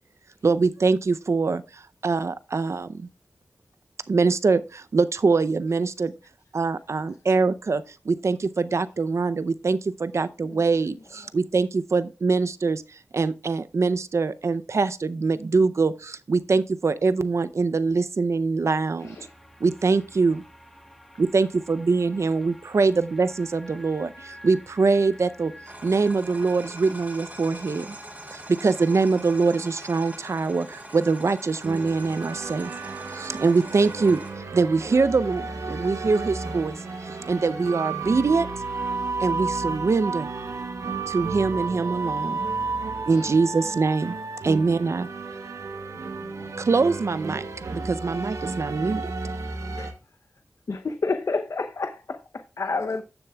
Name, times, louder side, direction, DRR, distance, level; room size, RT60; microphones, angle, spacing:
voice 1, 0.4-3.1 4.1-6.1 6.5-12.8 13.1-19.2 19.6-20.4 21.2-25.5 25.8-28.0 28.3-32.7 33.1-34.2 34.5-38.5 39.2-40.3 41.1-42.4 43.1-44.1 44.4-45.1 46.6-49.1, right 4 dB, 65° right, 0.5 m, -23 dB
voice 2, 6.7-7.3 41.2-41.4 42.5-43.0 45.1-45.2 49.7-50.4 52.8-53.0, left 3 dB, 80° left, 2.8 m, -51 dB
voice 3, 19.0-19.3 41.9-42.0 43.0-43.4 45.9-46.7 50.7-51.9 52.6-53.0, left 3 dB, 65° left, 0.6 m, -30 dB
sound 1, 19.0-38.9, equal, 5° left, 1.8 m, -49 dB
sound 2, 25.7-34.3, right 1 dB, 30° right, 3.0 m, -43 dB
sound 3, 31.6-49.9, right 3 dB, 80° right, 1.0 m, -32 dB
15.0 x 6.9 x 2.3 m
wide cardioid pair, 55°, 5 cm